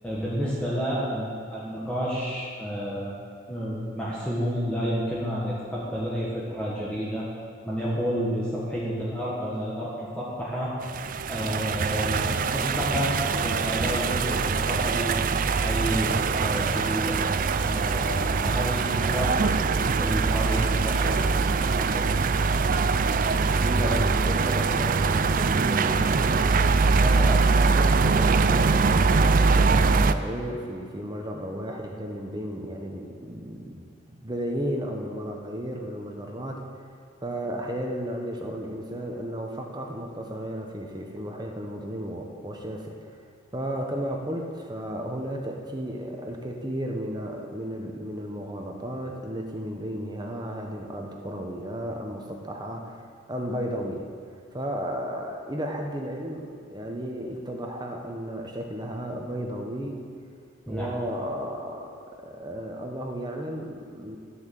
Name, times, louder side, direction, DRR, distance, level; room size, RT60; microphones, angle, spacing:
voice 1, 0.0-3.2 3.5-7.3 7.6-10.7 11.3-15.2 15.6-17.2 17.6-21.2 21.8-22.2 60.7-60.9, equal, 5° left, -8 dB, 1.6 m, -30 dB
sound 1, 10.8-30.1, right 4 dB, 45° right, 0.4 m, -23 dB
voice 2, 23.6-26.5 27.0-36.6 37.2-43.2 43.5-54.0 54.5-60.0 60.7-64.2, equal, 20° right, 2 dB, 1.0 m, -33 dB
12.5 x 7.0 x 7.6 m, 2.2 s
head